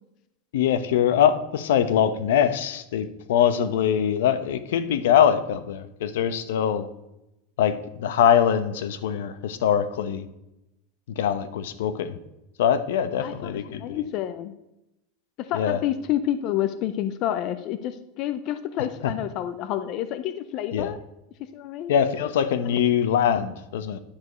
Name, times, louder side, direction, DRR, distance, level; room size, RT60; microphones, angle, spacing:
voice 1, 0.5-6.9 7.6-10.2 11.2-12.2 12.6-14.0 15.5-15.8 19.0-19.1 20.7-20.9 21.9-24.0, left 9 dB, 80° left, 12 dB, 0.9 m, -23 dB
voice 2, 13.2-14.5 15.4-21.0 21.5-21.9 22.7-22.8, left 11 dB, 35° left, 10 dB, 0.5 m, -29 dB
10.5 x 4.9 x 6.8 m, 0.89 s
supercardioid pair, 175°, 0 cm